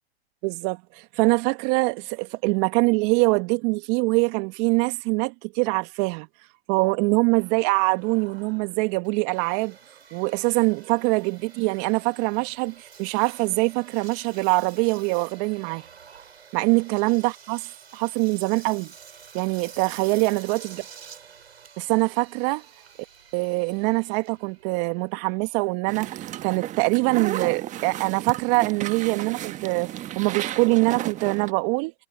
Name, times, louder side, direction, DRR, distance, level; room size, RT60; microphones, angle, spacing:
voice 1, 0.4-6.3 6.7-9.8 10.1-15.9 16.5-18.9 19.3-20.8 21.8-22.7 23.3-31.9, right 29 dB, 40° right, 2.0 m, -24 dB
Engine, 7.3-25.7, right 7 dB, 80° right, 6.5 m, -49 dB
sound 1, 25.9-31.5, right 13 dB, 25° right, 1.3 m, -33 dB
hypercardioid pair, 120°, 32 cm